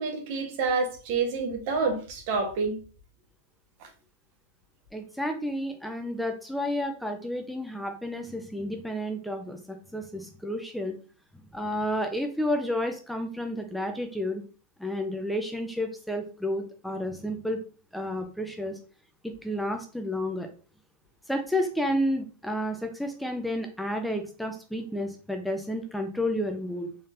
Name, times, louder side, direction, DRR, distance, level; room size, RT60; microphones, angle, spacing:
voice 1, 0.0-2.8 3.8-3.9, right 4 dB, 55° right, 1.2 m, -28 dB
voice 2, 4.9-10.9 11.5-14.4 14.8-17.6 17.9-18.8 19.4-20.5 21.3-26.9, left 1 dB, ahead, 0.5 m, -31 dB
4.0 x 3.2 x 2.6 m
hypercardioid pair, 125°, 0 cm